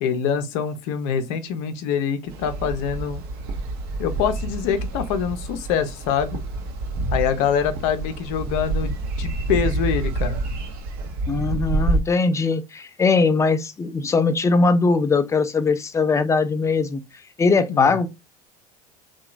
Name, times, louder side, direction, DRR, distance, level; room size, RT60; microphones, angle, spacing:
voice 1, 0.0-3.2 4.0-6.4 7.1-10.4 17.7-18.0, left 7 dB, 60° left, 0.6 m, -25 dB
sound 1, 2.3-12.0, right 2 dB, 55° right, 0.7 m, -28 dB
voice 2, 11.3-17.0 17.4-18.1, left 4 dB, 15° left, 0.4 m, -20 dB
2.8 x 2.3 x 2.4 m
hypercardioid pair, 70°, 19 cm